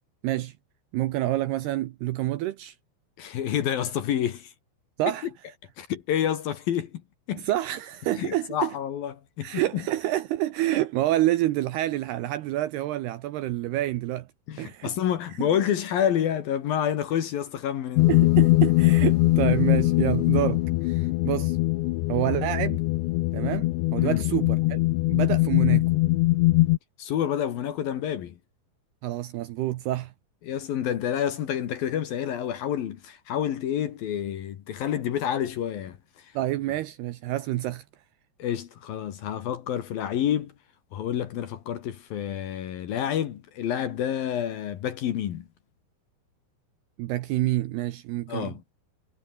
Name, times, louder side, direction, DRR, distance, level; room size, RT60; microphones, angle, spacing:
voice 1, 0.2-0.5 0.9-2.8 5.0-5.3 7.4-8.7 9.4-14.3 14.6-14.9 15.4-15.5 18.1-21.6 22.1-22.8 23.3-24.8 25.1-25.9 29.0-30.1 36.4-37.8 47.0-48.5, right 15 dB, 75° right, 2.5 m, -28 dB
voice 2, 3.2-4.5 5.8-7.0 7.3-7.5 8.2-9.8 14.5-18.1 24.0-24.2 27.0-28.4 30.4-36.3 38.4-40.5 40.9-45.5 48.3-48.6, left 10 dB, 60° left, 2.9 m, -28 dB
sound 1, 18.0-26.8, left 20 dB, 80° left, 2.8 m, -22 dB
omnidirectional pair, 5.5 m